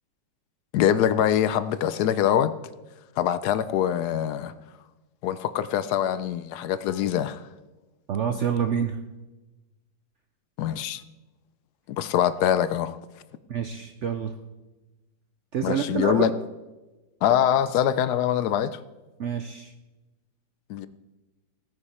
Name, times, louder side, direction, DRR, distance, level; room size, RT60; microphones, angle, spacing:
voice 1, 0.7-2.5 3.2-4.5 5.2-7.4 10.6-11.0 12.0-13.0 15.6-16.3 17.2-18.8 20.7-20.9, left 10 dB, 75° left, 14 dB, 1.0 m, -24 dB
voice 2, 8.1-9.0 13.5-14.3 15.5-16.3 19.2-19.7, right 7 dB, 70° right, 8 dB, 0.7 m, -27 dB
16.0 x 9.6 x 4.3 m, 1.1 s
omnidirectional pair, 1.9 m